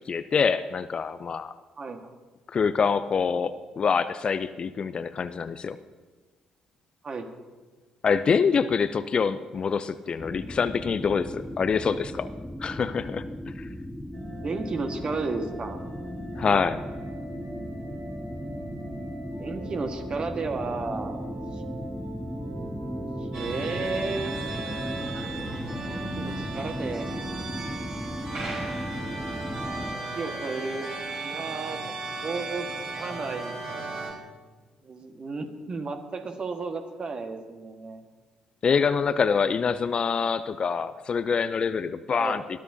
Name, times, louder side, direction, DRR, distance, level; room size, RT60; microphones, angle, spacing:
voice 1, 0.1-1.5 2.5-5.8 8.0-12.3 12.6-13.2 13.6-13.7 16.4-16.8 38.6-42.4, left 6 dB, 40° left, 13 dB, 0.5 m, -25 dB
voice 2, 1.8-2.1 7.0-7.3 14.4-15.8 19.4-21.6 23.3-24.3 25.8-27.1 30.1-31.8 32.1-32.7 33.0-33.5 34.8-38.0 42.2-42.5, right 4 dB, 40° right, 5 dB, 1.6 m, -33 dB
sound 1, 10.2-30.0, equal, 5° left, 0.8 m, -36 dB
sound 2, 14.1-24.9, right 2 dB, 80° right, 3.7 m, -42 dB
sound 3, 23.3-34.1, right 3 dB, 60° right, 5.1 m, -35 dB
20.5 x 12.5 x 2.8 m, 1.3 s
figure-of-eight pair, 45°, 2 cm